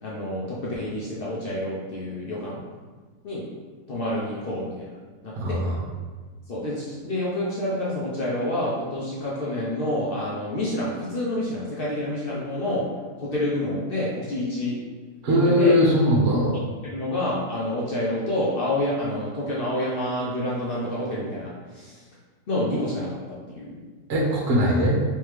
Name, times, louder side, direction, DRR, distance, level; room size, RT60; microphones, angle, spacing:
voice 1, 0.0-2.6 3.2-3.4 3.9-4.9 5.2-5.6 6.5-12.9 13.2-14.8 15.3-15.7 16.8-22.0 22.5-23.8, left 1 dB, 55° left, -6 dB, 0.6 m, -28 dB
voice 2, 5.4-5.8 15.2-16.5 24.1-25.0, equal, 45° right, -5 dB, 1.0 m, -20 dB
3.3 x 3.2 x 3.1 m, 1.4 s
omnidirectional pair, 1.7 m